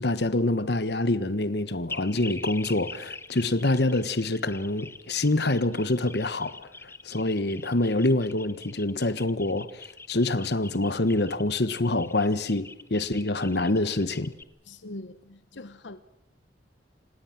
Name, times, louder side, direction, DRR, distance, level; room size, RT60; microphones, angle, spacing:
voice 1, 0.0-6.7 7.0-14.3, left 2 dB, 65° left, 1.4 m, -26 dB
sound 1, 1.9-14.4, left 3 dB, 15° left, 1.1 m, -43 dB
voice 2, 14.7-16.0, left 2 dB, 90° left, 1.0 m, -42 dB
26.5 x 20.0 x 7.5 m
head